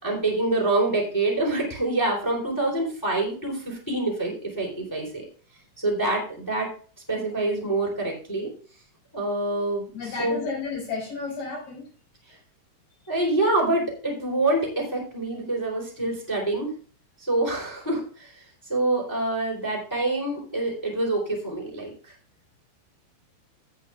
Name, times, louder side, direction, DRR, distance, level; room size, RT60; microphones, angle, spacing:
voice 1, 0.0-5.2 5.8-6.7 7.1-8.5 9.1-10.4 13.1-16.7 17.2-18.3 18.7-22.1, right 2 dB, 5° left, -1 dB, 2.7 m, -26 dB
voice 2, 9.9-11.9, left 4 dB, 70° left, -6 dB, 8.1 m, -32 dB
15.5 x 8.3 x 2.4 m, 0.40 s
omnidirectional pair, 5.6 m